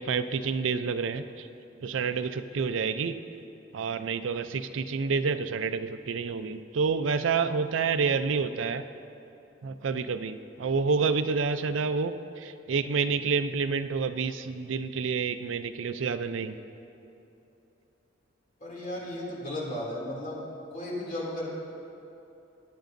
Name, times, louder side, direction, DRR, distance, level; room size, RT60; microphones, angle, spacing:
voice 1, 0.0-1.5 1.8-3.1 3.7-8.8 9.6-16.6, right 5 dB, 80° right, 10 dB, 0.5 m, -28 dB
voice 2, 18.6-20.4 20.7-21.5, left 1 dB, 40° left, -5 dB, 2.6 m, -35 dB
22.0 x 8.2 x 2.6 m, 2.9 s
head